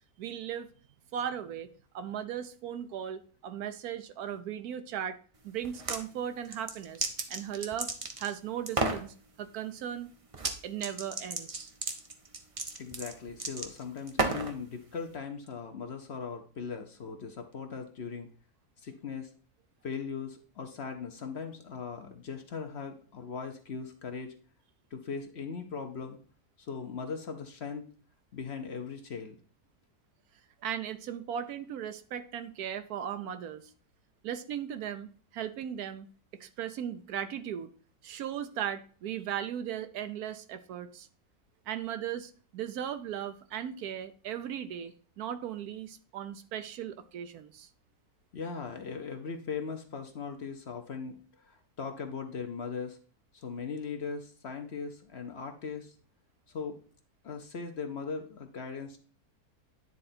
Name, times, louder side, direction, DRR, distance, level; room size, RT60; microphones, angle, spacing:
voice 1, 0.2-0.7 1.1-1.7 1.9-5.2 5.4-7.9 8.2-10.1 10.6-11.7 30.6-33.7 34.2-36.1 36.4-37.7 38.0-41.1 41.7-47.7, right 9 dB, 80° right, 1.2 m, -37 dB
sound 1, 5.6-6.0 6.4-8.3 8.7-9.0 10.3-10.6 10.8-14.6, right 3 dB, 35° right, 0.5 m, -33 dB
voice 2, 12.8-18.3 18.8-19.3 19.8-24.3 24.9-26.2 26.6-27.9 28.3-29.4 48.3-53.0 53.3-55.9 56.5-56.8 57.2-59.0, left 5 dB, 50° left, 1.0 m, -39 dB
9.9 x 3.8 x 4.2 m
omnidirectional pair, 1.6 m